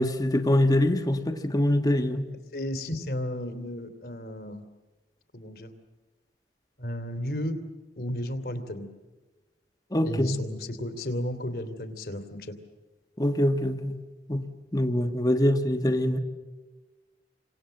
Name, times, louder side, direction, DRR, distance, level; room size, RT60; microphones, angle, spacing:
voice 1, 0.0-2.2 9.9-10.4 13.2-14.0 14.3-14.4 14.7-16.2, left 1 dB, 20° left, 1.4 m, -24 dB
voice 2, 2.5-4.6 5.3-5.7 6.8-7.6 8.0-8.9 10.0-12.6, left 1 dB, 60° left, 2.7 m, -33 dB
30.0 x 25.5 x 7.8 m
head